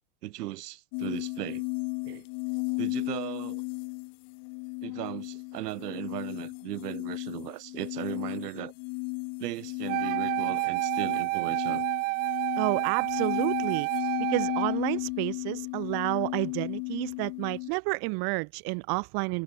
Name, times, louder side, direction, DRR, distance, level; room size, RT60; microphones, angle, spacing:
voice 1, 0.2-1.6 2.0-2.3 2.8-3.6 4.8-8.7 9.4-11.9, right 16 dB, 65° right, 4.4 m, -37 dB
sound 1, 0.9-17.7, left 35 dB, 50° left, 2.0 m, -35 dB
Wind instrument woodwind instrument, 9.9-14.8, right 25 dB, 20° right, 0.3 m, -29 dB
voice 2, 12.6-13.9 14.2-19.4, right 32 dB, 45° right, 4.2 m, -30 dB
hypercardioid pair, 125°, 50 cm